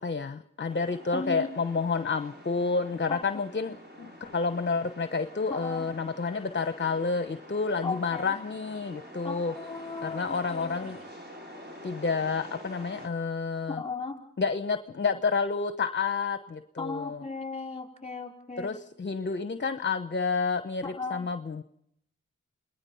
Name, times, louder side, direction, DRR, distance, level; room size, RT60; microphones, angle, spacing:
voice 1, 0.0-9.5 10.0-11.0 11.8-13.8 14.4-17.2 18.6-21.6, left 4 dB, 35° left, 10 dB, 1.0 m, -30 dB
sound 1, 0.7-13.1, equal, 35° right, 6.3 m, -47 dB
voice 2, 1.1-1.5 3.1-3.2 5.5-5.9 7.8-8.3 9.2-11.0 13.8-14.2 16.8-18.7 20.8-21.3, left 4 dB, 20° left, 3 dB, 4.9 m, -36 dB
28.5 x 20.0 x 5.7 m, 0.73 s
cardioid pair, 60°, 31 cm